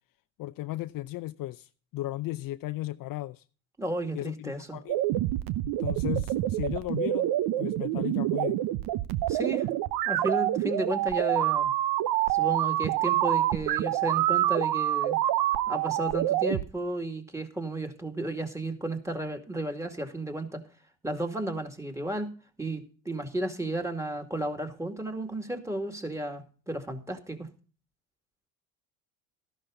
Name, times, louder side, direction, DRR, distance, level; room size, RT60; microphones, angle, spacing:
voice 1, 0.4-3.4 4.1-5.0 5.6-7.3 7.6-8.6, left 16 dB, 55° left, 0.6 m, -35 dB
voice 2, 3.8-4.8 9.3-9.7 10.1-11.7 12.3-15.2 15.7-20.6 21.0-22.3 22.6-27.5, right 1 dB, 5° right, 2.2 m, -33 dB
sound 1, 4.9-16.6, right 14 dB, 60° right, 0.8 m, -27 dB
13.0 x 11.5 x 3.9 m
supercardioid pair, 85°, 42 cm